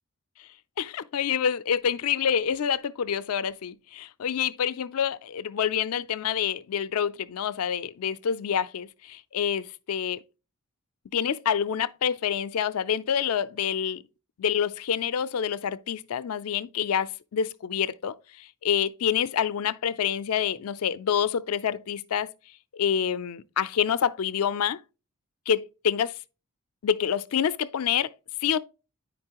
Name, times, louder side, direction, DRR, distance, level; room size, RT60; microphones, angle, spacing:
voice 1, 0.8-10.2 11.1-14.0 14.4-22.3 22.7-24.8 25.5-26.2 26.8-28.1 28.4-28.6, left 8 dB, 75° left, 0.4 m, -27 dB
9.5 x 5.1 x 2.9 m
head